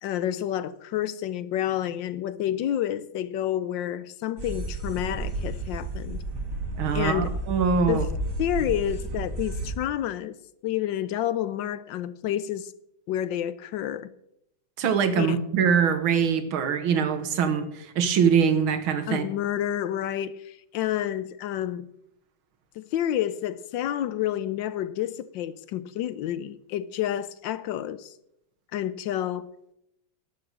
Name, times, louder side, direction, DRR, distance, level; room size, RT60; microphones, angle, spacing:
voice 1, 0.0-6.2 6.9-7.3 7.9-8.1 8.4-10.4 10.6-12.7 13.1-14.1 15.2-15.4 19.1-21.9 22.8-28.1 28.7-29.5, left 11 dB, 75° left, 1.3 m, -29 dB
sound 1, 4.4-9.7, right 2 dB, 55° right, 2.3 m, -32 dB
voice 2, 6.8-8.1 14.8-19.3, right 6 dB, 90° right, 2.0 m, -23 dB
12.5 x 7.8 x 6.5 m
omnidirectional pair, 2.2 m